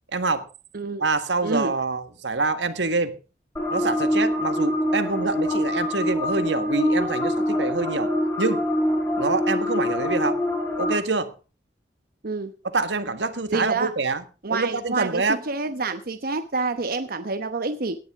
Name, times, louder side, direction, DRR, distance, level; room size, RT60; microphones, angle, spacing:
voice 1, 0.1-0.5 1.0-3.1 3.7-8.1 8.4-8.6 9.2-10.4 10.8-11.3 12.7-14.2 14.5-15.4, right 3 dB, 85° right, 10 dB, 1.7 m, -26 dB
voice 2, 0.7-1.0 1.4-1.7 12.2-12.5 13.5-13.9 14.4-18.0, right 3 dB, 55° right, 8 dB, 1.0 m, -27 dB
sound 1, 3.6-10.9, left 1 dB, 15° left, 5.9 m, -24 dB
17.5 x 11.0 x 3.7 m, 0.34 s
head